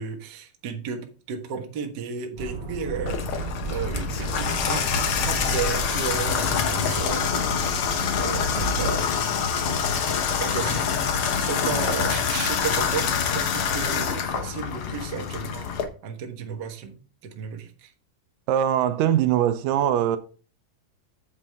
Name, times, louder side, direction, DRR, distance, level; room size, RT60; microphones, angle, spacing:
voice 1, 0.0-4.9 5.2-7.3 8.1-9.1 10.3-10.9 11.4-15.7 16.0-17.9, right 6 dB, 50° right, 1.3 m, -33 dB
Accelerating revving vroom, 2.4-9.0, right 2 dB, 35° right, 2.8 m, -33 dB
Water tap faucet / Bathtub (filling or washing), 3.0-15.8, left 7 dB, 80° left, 1.2 m, -26 dB
voice 2, 18.5-20.2, right 10 dB, 80° right, 2.4 m, -21 dB
8.5 x 8.1 x 3.5 m
omnidirectional pair, 3.9 m